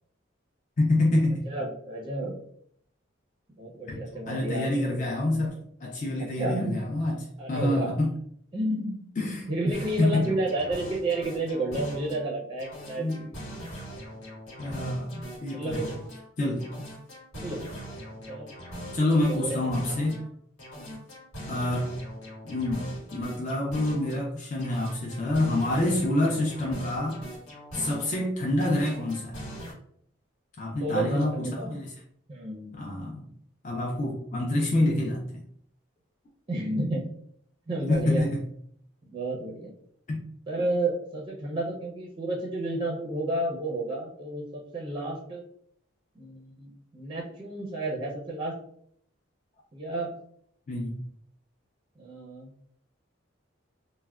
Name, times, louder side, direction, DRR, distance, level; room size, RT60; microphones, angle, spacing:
voice 1, 0.8-1.4 3.9-8.1 9.2-9.5 10.0-10.3 13.0-13.3 14.6-15.9 16.4-16.7 18.9-20.2 21.5-21.9 22.4-27.2 27.7-29.4 30.6-31.9 32.7-33.3 33.6-35.4 37.9-38.4 40.1-40.2 50.7-51.0, left 1 dB, 40° left, -2 dB, 0.4 m, -27 dB
voice 2, 1.4-2.4 3.6-5.0 6.4-6.8 7.4-7.9 8.5-9.1 9.5-13.1 15.5-15.9 16.8-16.9 17.3-17.9 18.3-18.5 19.3-19.6 20.7-21.0 27.8-28.0 30.8-31.7 32.3-32.7 36.5-37.1 37.7-38.3 39.1-39.7 40.5-45.4 46.2-48.5 49.7-50.2 52.0-52.5, right 2 dB, 25° right, -2 dB, 0.5 m, -31 dB
sound 1, 9.7-12.3 12.6-16.3 16.6-20.3 20.6-24.3 24.6-28.3 28.6-29.7, equal, 80° left, 1.2 m, -41 dB
3.3 x 2.1 x 2.2 m, 0.66 s
head